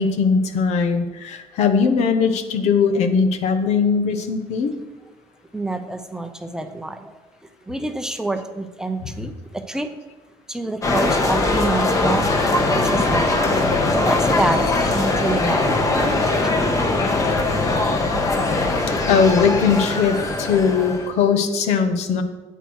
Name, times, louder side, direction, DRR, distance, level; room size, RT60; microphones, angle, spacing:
voice 1, 0.0-4.7 9.2-9.3 19.1-22.2, left 5 dB, 75° left, 8 dB, 1.3 m, -19 dB
voice 2, 5.5-7.0 7.7-9.3 9.7-9.9 10.5-12.3 12.9-13.2 13.9-14.7 14.9-16.6, right 2 dB, 5° right, 7 dB, 0.6 m, -26 dB
sound 1, 10.8-21.1, left 2 dB, 30° left, 1.4 m, -21 dB
13.5 x 9.1 x 4.8 m, 1.2 s
cardioid pair, 170°, 11 cm